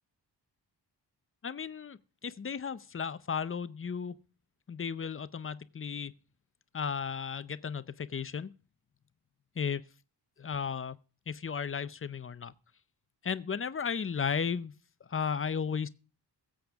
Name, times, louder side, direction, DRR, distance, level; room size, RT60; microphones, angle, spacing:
voice 1, 1.4-4.2 4.7-6.1 6.7-8.5 9.6-9.8 10.4-11.0 11.3-12.5 13.2-14.7 15.1-15.9, left 6 dB, 30° left, 0.5 m, -34 dB
22.0 x 7.8 x 3.5 m
wide cardioid pair, 140°, 43 cm